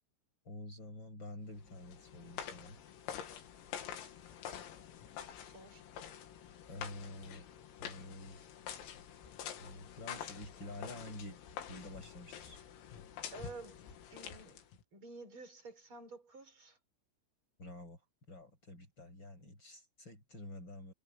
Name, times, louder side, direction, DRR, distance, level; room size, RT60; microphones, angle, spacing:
voice 1, 0.5-2.8 6.7-7.5 7.8-8.5 9.6-11.4 11.7-12.6 17.6-18.0 18.3-20.9, left 1 dB, 20° left, 7.1 m, -48 dB
sound 1, 1.5-14.8, left 9 dB, 90° left, 5.3 m, -47 dB
voice 2, 5.5-5.8 13.3-13.8 14.1-14.6 14.9-16.8, right 3 dB, 25° right, 6.8 m, -50 dB
omnidirectional pair, 5.9 m